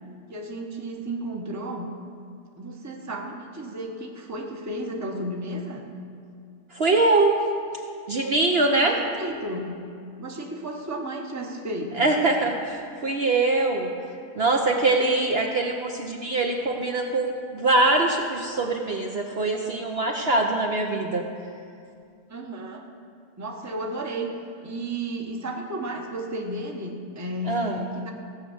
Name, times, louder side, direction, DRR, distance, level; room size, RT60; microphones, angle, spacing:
voice 1, 0.3-1.9 2.6-5.9 8.8-9.9 10.2-12.1 22.3-22.9 23.4-24.3 24.6-28.1, right 1 dB, 15° right, 1 dB, 0.9 m, -33 dB
voice 2, 6.7-7.3 8.1-9.0 12.0-13.9 14.4-21.2 27.5-27.8, right 2 dB, 50° right, 1 dB, 1.0 m, -23 dB
16.0 x 6.4 x 7.9 m, 2.3 s
omnidirectional pair, 1.6 m